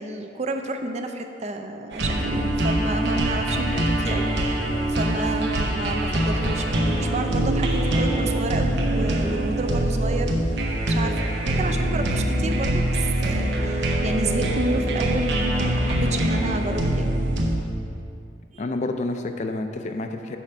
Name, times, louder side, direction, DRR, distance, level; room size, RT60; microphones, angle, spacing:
voice 1, 0.0-17.2 18.5-18.7, right 2 dB, 35° right, 5 dB, 0.4 m, -31 dB
sound 1, 1.9-17.5, right 1 dB, 65° right, 0.8 m, -23 dB
voice 2, 3.6-3.9 18.6-20.4, left 2 dB, 40° left, 6 dB, 0.4 m, -29 dB
7.2 x 4.4 x 5.4 m, 2.5 s
head